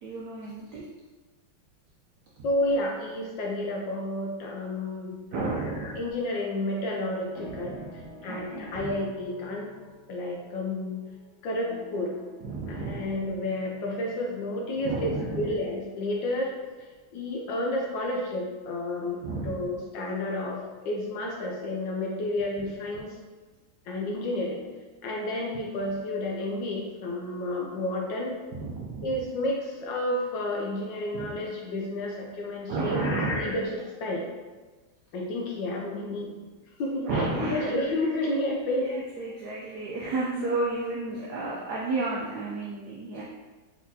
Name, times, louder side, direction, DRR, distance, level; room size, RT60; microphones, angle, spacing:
voice 1, 0.0-0.8 5.3-6.0 7.6-7.8 8.3-8.9 12.4-13.0 14.8-15.5 19.2-19.6 28.5-29.2 31.1-31.3 32.7-33.5 37.1-37.8 38.8-43.2, right 3 dB, 70° right, -4 dB, 1.0 m, -32 dB
voice 2, 2.4-7.7 8.2-9.7 10.1-11.0 11.4-12.1 12.7-16.7 17.1-23.2 23.9-24.6 25.0-28.3 29.0-34.3 35.1-36.5 36.8-38.9, left 1 dB, 70° left, -1 dB, 1.2 m, -31 dB
sound 1, 7.3-16.9, right 2 dB, ahead, 0.6 m, -50 dB
4.5 x 4.1 x 2.7 m, 1.3 s
omnidirectional pair, 2.3 m